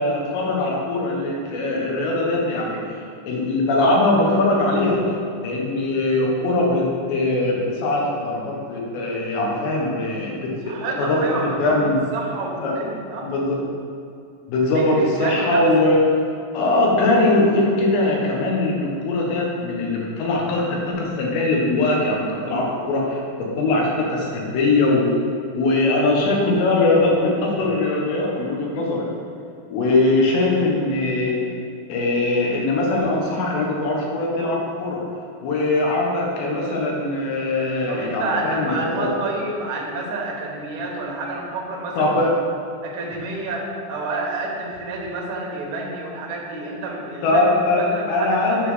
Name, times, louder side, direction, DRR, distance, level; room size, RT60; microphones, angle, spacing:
voice 1, 0.0-2.8 3.3-5.2 5.4-12.0 12.6-12.7 13.2-13.6 14.5-16.0 16.5-25.1 25.5-29.1 29.7-31.4 31.9-35.0 35.4-39.1 42.0-42.3 47.2-48.7, left 2 dB, 85° left, -2 dB, 3.5 m, -21 dB
voice 2, 10.6-13.3 14.6-15.6 37.9-42.3 42.8-47.5 47.7-48.7, right 2 dB, 70° right, -2 dB, 1.8 m, -29 dB
8.8 x 4.0 x 6.3 m, 2.4 s
omnidirectional pair, 4.9 m